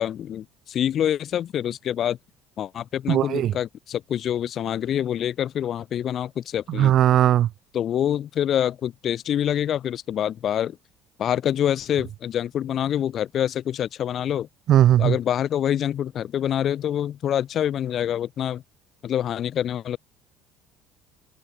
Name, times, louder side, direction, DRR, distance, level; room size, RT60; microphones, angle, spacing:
voice 1, 0.0-2.2 2.6-7.0 7.7-10.8 11.2-14.5 15.0-18.6 19.0-20.0, left 10 dB, 55° left, 3.3 m, -26 dB
voice 2, 3.1-3.5 6.8-7.5 14.7-15.1, right 11 dB, 55° right, 2.7 m, -18 dB
open air
supercardioid pair, 80°, 0 cm